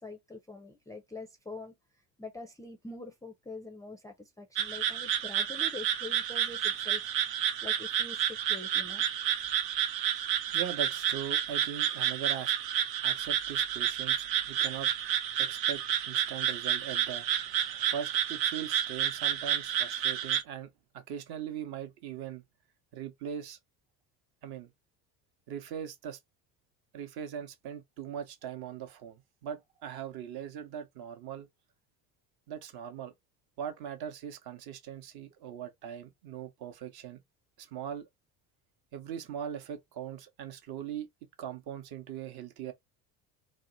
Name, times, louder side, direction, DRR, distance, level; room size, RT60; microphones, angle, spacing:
voice 1, 0.0-1.7 2.2-7.1 7.6-9.1, left 2 dB, 10° left, 0.4 m, -44 dB
sound 1, 4.6-20.4, right 10 dB, 80° right, 0.6 m, -30 dB
voice 2, 10.5-12.5 13.0-14.9 15.4-22.4 22.9-23.6 24.4-24.7 25.5-26.2 26.9-31.5 32.5-33.1 33.6-37.2 37.6-38.1 38.9-41.1 41.4-42.7, right 9 dB, 50° right, 0.8 m, -40 dB
2.7 x 2.1 x 2.5 m
hypercardioid pair, 65°, 48 cm